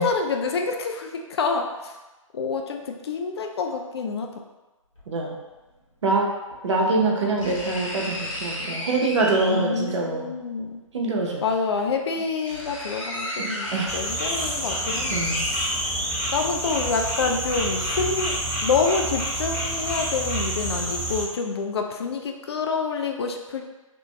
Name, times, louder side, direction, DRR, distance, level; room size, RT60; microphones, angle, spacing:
voice 1, 0.0-1.9 2.3-4.3 9.5-10.8 11.4-15.2 16.3-18.4 18.6-23.7, left 4 dB, 50° left, 3 dB, 0.4 m, -27 dB
sound 1, 5.0-5.1 6.5-6.6 7.4-9.8 11.1-11.2 11.8-11.9 12.2-16.6 17.0-17.1, left 1 dB, 75° left, 1.2 m, -33 dB
voice 2, 5.1-5.4 6.0-6.3 6.6-10.3 10.9-11.4 13.4-13.9 15.1-15.4, right 2 dB, 60° right, -1 dB, 0.7 m, -24 dB
sound 2, 13.9-21.2, right 1 dB, 25° left, 1.4 m, -28 dB
3.0 x 2.5 x 3.2 m, 1.1 s
figure-of-eight pair, 130°, 17 cm